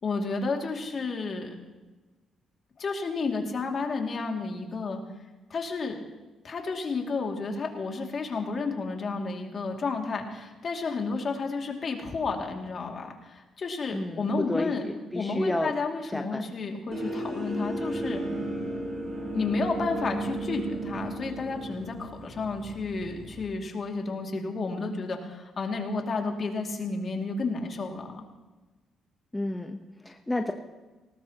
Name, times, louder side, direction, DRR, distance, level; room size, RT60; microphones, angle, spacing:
voice 1, 0.0-1.5 2.8-5.0 5.5-5.9 6.4-14.9 15.1-18.2 19.3-28.3, left 4 dB, 45° left, 2 dB, 2.3 m, -31 dB
voice 2, 13.9-15.7 16.1-16.4 29.3-30.5, left 1 dB, 10° left, 4 dB, 0.9 m, -31 dB
sound 1, 16.9-23.5, right 1 dB, 35° right, 6.1 m, -34 dB
19.0 x 18.5 x 2.9 m, 1.2 s
cardioid pair, 90°, 0 cm